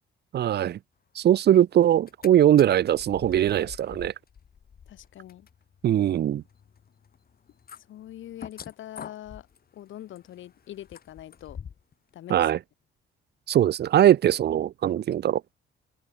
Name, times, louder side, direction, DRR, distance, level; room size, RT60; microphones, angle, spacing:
voice 1, 0.3-0.8 1.2-4.1 5.8-6.4 12.3-12.6 13.5-15.4, right 11 dB, 55° right, 0.6 m, -21 dB
sound 1, 1.9-2.3 2.6-11.9 12.3-12.4, left 7 dB, 50° left, 3.7 m, -47 dB
voice 2, 4.9-5.5 7.9-9.5 9.7-11.6 12.1-12.5, left 12 dB, 75° left, 2.6 m, -43 dB
cardioid pair, 90°, 20 cm